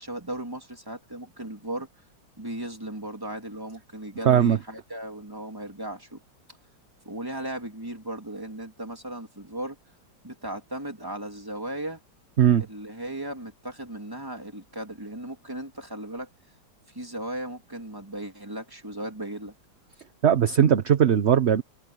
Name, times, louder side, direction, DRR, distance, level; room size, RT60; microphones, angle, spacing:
voice 1, 0.0-1.9 2.4-6.2 7.0-9.8 10.2-12.0 12.7-16.3 16.9-19.5, right 1 dB, 10° right, 3.3 m, -36 dB
voice 2, 4.2-4.6 12.4-12.6 20.2-21.6, right 9 dB, 45° right, 1.0 m, -19 dB
omnidirectional pair, 2.0 m